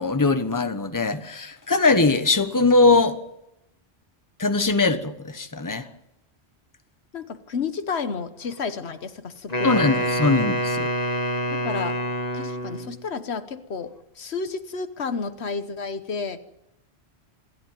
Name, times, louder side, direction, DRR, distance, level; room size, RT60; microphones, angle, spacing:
voice 1, 0.0-3.2 4.4-5.9 9.6-10.9, left 3 dB, 20° left, 1.2 m, -21 dB
voice 2, 7.1-9.9 11.5-12.0 12.3-16.4, left 5 dB, 80° left, 1.4 m, -31 dB
Wind instrument woodwind instrument, 9.5-13.0, equal, 40° left, 1.8 m, -26 dB
27.0 x 11.5 x 9.2 m
omnidirectional pair, 1.1 m